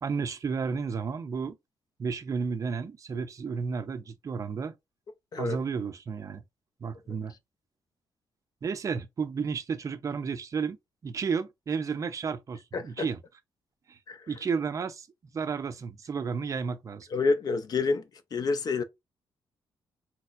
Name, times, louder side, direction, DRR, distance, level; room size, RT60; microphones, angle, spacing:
voice 1, 0.0-1.6 2.0-4.7 5.4-6.4 6.8-7.3 8.6-10.8 11.0-13.2 13.9-14.0 14.3-15.1 15.3-17.1, right 5 dB, 35° right, 0.5 m, -32 dB
voice 2, 12.7-13.1 14.1-14.3 17.1-18.0 18.3-18.8, left 4 dB, 45° left, 0.5 m, -28 dB
4.2 x 2.0 x 2.4 m
cardioid pair, 115°, 9 cm